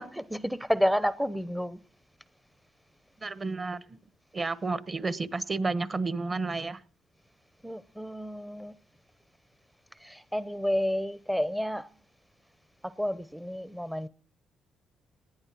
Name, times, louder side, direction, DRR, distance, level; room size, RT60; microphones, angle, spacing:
voice 1, 0.0-1.8 7.6-8.8 9.9-11.9 12.8-14.1, equal, ahead, 0.6 m, -30 dB
voice 2, 3.2-4.0 4.3-6.8, right 3 dB, 30° right, 1.2 m, -31 dB
19.0 x 11.0 x 6.0 m
cardioid pair, 90°, 0 cm